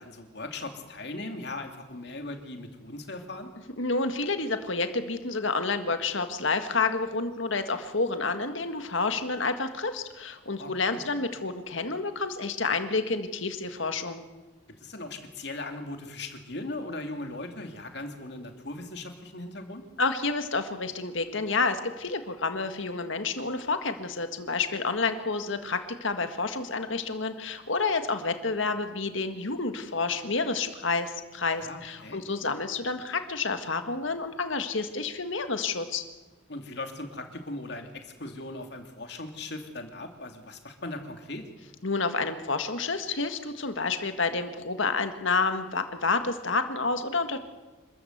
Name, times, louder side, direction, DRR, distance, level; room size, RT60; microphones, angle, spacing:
voice 1, 0.0-3.5 10.6-11.0 14.8-19.8 31.5-32.2 36.5-41.5, left 2 dB, 55° left, 5 dB, 2.7 m, -39 dB
voice 2, 3.8-14.2 20.0-36.0 41.8-47.4, left 4 dB, 70° left, 8 dB, 1.8 m, -29 dB
26.5 x 14.0 x 8.1 m, 1.2 s
head